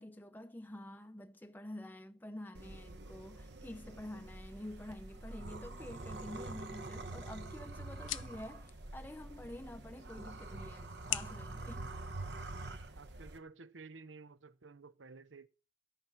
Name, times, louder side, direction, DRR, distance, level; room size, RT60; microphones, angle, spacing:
voice 1, 0.0-11.9, left 1 dB, 10° left, 0.6 m, -48 dB
sound 1, 2.5-13.4, right 2 dB, 65° right, 1.1 m, -46 dB
sound 2, 6.8-12.8, left 13 dB, 90° left, 0.6 m, -47 dB
voice 2, 13.0-15.5, right 4 dB, 85° right, 0.8 m, -53 dB
13.5 x 5.9 x 7.1 m
head